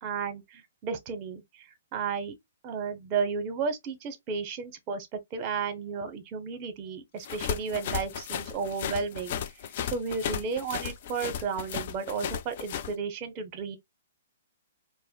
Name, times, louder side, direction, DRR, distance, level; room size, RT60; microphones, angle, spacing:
voice 1, 0.0-2.3 2.6-9.4 9.9-13.8, right 5 dB, 30° right, 0.8 m, -33 dB
sound 1, 7.2-12.9, left 9 dB, 45° left, 0.4 m, -34 dB
4.7 x 2.0 x 2.3 m
hypercardioid pair, 150°, 0 cm